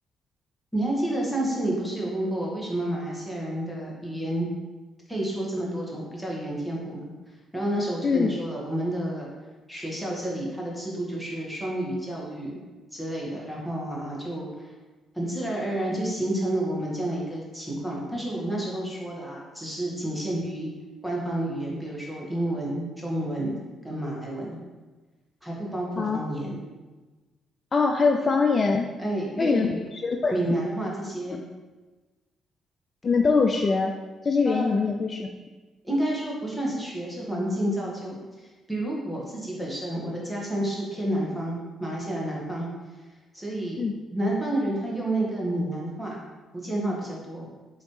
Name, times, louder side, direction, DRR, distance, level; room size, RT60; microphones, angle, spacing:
voice 1, 0.7-4.5 5.1-9.3 9.7-12.6 12.9-14.7 15.1-20.7 21.0-23.5 23.8-24.6 25.4-26.6 29.0-29.8 30.3-31.4 34.4-34.8 35.8-42.7 43.3-43.8 44.1-46.2 46.5-47.5, right 1 dB, ahead, -4 dB, 1.5 m, -30 dB
voice 2, 27.7-28.9 29.4-29.7 30.0-30.5 33.0-33.9 34.2-35.3 43.8-43.9, left 4 dB, 45° left, 3 dB, 0.3 m, -23 dB
4.0 x 3.1 x 3.2 m, 1.2 s
hypercardioid pair, 50°, 0 cm